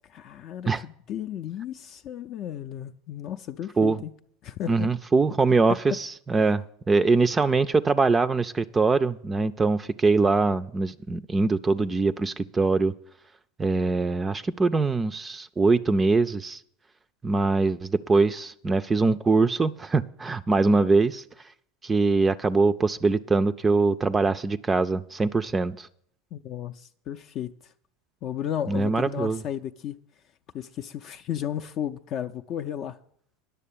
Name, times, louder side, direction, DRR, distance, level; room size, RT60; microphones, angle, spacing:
voice 1, 0.0-4.1 4.4-4.9 5.7-5.8 6.4-6.5 26.3-27.7 28.2-30.0 30.5-33.0, left 10 dB, 45° left, 0.4 m, -34 dB
voice 2, 4.7-12.9 13.6-16.6 17.2-21.2 21.8-25.9 28.7-29.4, right 3 dB, 20° right, 0.4 m, -23 dB
10.0 x 6.7 x 8.4 m
hypercardioid pair, 100°, 0 cm